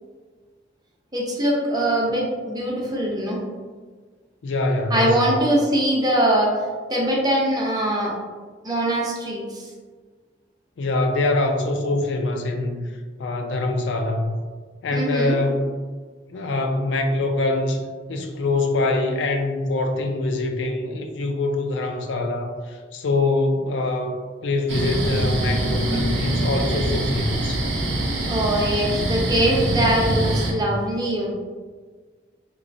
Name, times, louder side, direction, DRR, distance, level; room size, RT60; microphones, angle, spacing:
voice 1, 1.1-3.4 4.9-6.6 6.9-8.2 8.6-9.7 14.9-15.4 28.3-31.3, right 1 dB, 20° right, -3 dB, 0.6 m, -22 dB
voice 2, 4.4-5.4 10.8-12.9 13.2-14.4 14.8-15.7 16.3-24.2 24.4-27.6, left 2 dB, 80° left, 4 dB, 0.4 m, -24 dB
sound 1, 24.7-30.5, right 1 dB, 75° right, 0.6 m, -24 dB
3.0 x 3.0 x 2.6 m, 1.5 s
head